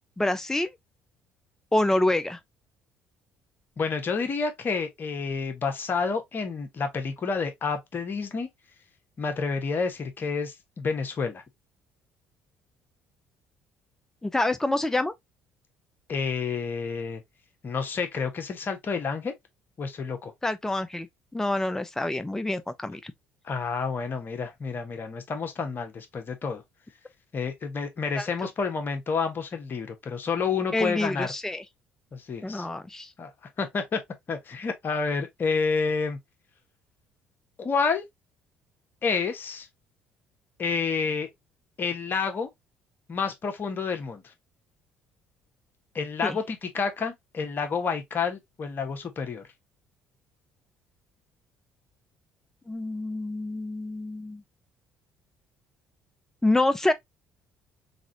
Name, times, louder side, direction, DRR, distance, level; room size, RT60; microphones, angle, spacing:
voice 1, 0.2-0.7 1.7-2.4 14.2-15.1 20.4-21.1 21.3-23.1 28.2-28.3 30.7-31.6 32.4-33.1 46.2-46.4 52.7-54.4 56.4-56.9, left 2 dB, 10° left, 0.6 m, -26 dB
voice 2, 3.8-8.5 9.2-11.4 16.1-17.2 17.6-19.3 19.8-20.3 23.4-26.6 27.3-31.3 32.1-32.7 33.2-33.3 33.6-34.0 34.3-36.2 37.6-38.0 39.0-39.7 40.6-41.3 41.8-42.5 43.1-44.2 45.9-49.4, left 5 dB, 40° left, 1.3 m, -29 dB
4.0 x 3.7 x 2.8 m
figure-of-eight pair, 50°, 6 cm